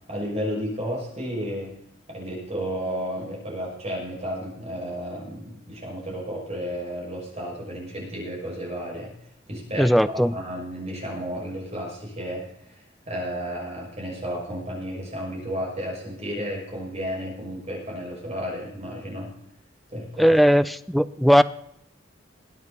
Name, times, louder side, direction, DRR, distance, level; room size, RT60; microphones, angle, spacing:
voice 1, 0.1-1.7 2.1-9.1 9.5-19.3 19.9-20.4, equal, 35° right, -2 dB, 6.0 m, -32 dB
voice 2, 9.8-10.4 20.2-21.4, equal, ahead, 13 dB, 0.4 m, -18 dB
21.0 x 9.1 x 4.1 m, 0.75 s
head